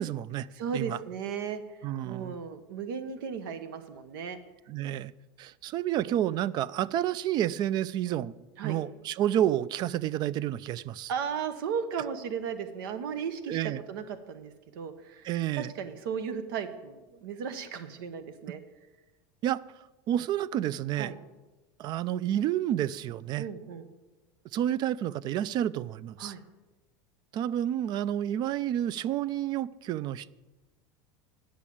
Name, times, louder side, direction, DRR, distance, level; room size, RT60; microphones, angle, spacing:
voice 1, 0.0-0.5 0.7-1.0 1.8-2.3 4.7-5.1 5.4-8.3 8.6-11.1 13.5-13.8 15.2-15.7 19.4-19.6 20.1-21.1 21.8-23.5 24.5-26.3 27.3-30.3, right 11 dB, 40° right, 20 dB, 0.4 m, -30 dB
voice 2, 0.5-1.8 2.0-4.4 8.6-8.8 11.1-18.6 20.9-21.1 23.4-23.8 26.2-26.4, right 7 dB, 85° right, 10 dB, 0.9 m, -36 dB
10.5 x 6.2 x 8.5 m, 1.1 s
supercardioid pair, 130°, 11 cm